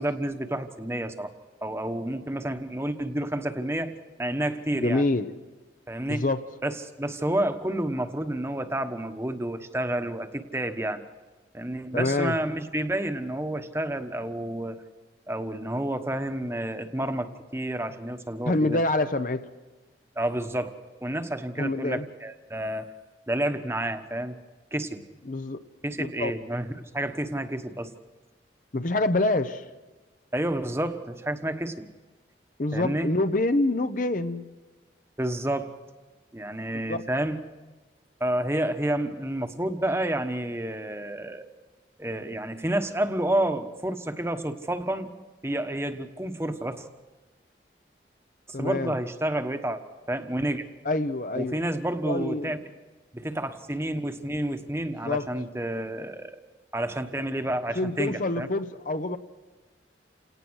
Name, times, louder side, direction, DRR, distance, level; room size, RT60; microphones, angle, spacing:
voice 1, 0.0-1.3 1.6-5.0 5.9-6.2 6.6-11.0 11.5-14.8 15.3-18.8 20.2-22.9 23.3-24.4 24.7-25.0 25.8-26.7 26.9-27.9 30.3-31.9 32.7-33.1 35.2-35.7 36.3-37.4 38.2-41.4 42.0-45.1 45.4-46.9 48.5-49.8 50.1-50.7 51.3-52.6 53.1-56.4 56.7-58.5, right 1 dB, 15° right, 7 dB, 1.2 m, -30 dB
voice 2, 4.8-5.3 6.1-6.4 11.9-12.4 18.5-19.5 21.6-22.1 25.3-25.6 26.0-26.3 28.7-29.6 32.6-34.4 36.9-37.0 48.5-48.9 50.8-51.6 52.1-52.5 55.0-55.3 57.7-59.2, left 2 dB, 45° left, 10 dB, 0.8 m, -26 dB
29.0 x 18.5 x 6.4 m, 1.2 s
head